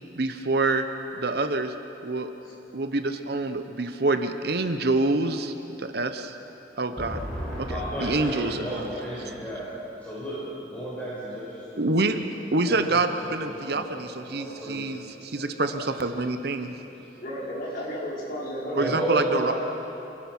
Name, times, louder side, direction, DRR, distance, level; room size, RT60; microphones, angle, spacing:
voice 1, 0.2-0.9 1.1-1.7 2.0-2.3 2.7-6.3 6.8-7.2 7.6-8.9 11.8-12.2 12.5-16.7 18.8-19.5, right 2 dB, 60° right, 8 dB, 0.9 m, -26 dB
voice 2, 7.0-11.9 12.7-13.9 14.3-15.9 16.5-17.2 18.8-19.5, right 1 dB, 10° left, -9 dB, 5.1 m, -33 dB
voice 3, 17.2-19.0 19.3-19.5, equal, 50° left, -6 dB, 5.6 m, -33 dB
27.5 x 17.5 x 6.1 m, 3.0 s
head